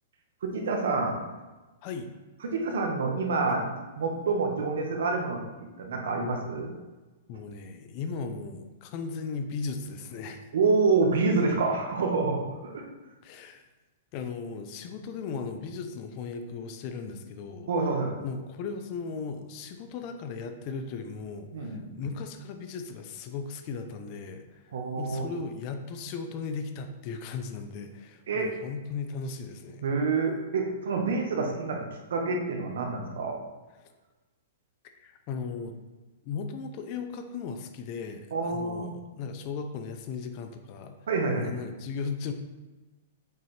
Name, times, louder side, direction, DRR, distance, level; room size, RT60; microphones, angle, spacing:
voice 1, 0.4-1.2 2.5-5.4 5.8-6.7 10.5-12.8 17.7-18.2 21.5-21.9 24.7-25.3 28.3-28.5 29.8-31.8 32.1-33.4 38.3-38.9 41.1-41.5, right 4 dB, 75° right, 2 dB, 1.2 m, -27 dB
voice 2, 7.3-10.5 13.2-13.6 14.1-17.7 18.2-24.6 24.9-29.9 34.8-35.8 36.2-41.0 41.3-42.3, left 5 dB, 35° left, 7 dB, 0.6 m, -37 dB
6.7 x 4.3 x 3.3 m, 1.2 s
hypercardioid pair, 165°, 0 cm